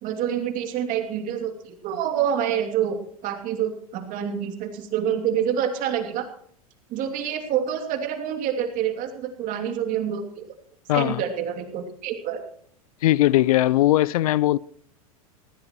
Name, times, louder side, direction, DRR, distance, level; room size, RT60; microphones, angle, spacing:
voice 1, 0.0-3.0 3.2-6.3 6.9-10.5 10.9-12.4, right 9 dB, 45° right, 2.8 m, -27 dB
voice 2, 10.9-11.2 13.0-14.6, left 15 dB, 75° left, 0.4 m, -19 dB
20.0 x 15.5 x 3.1 m
hypercardioid pair, 100°, 19 cm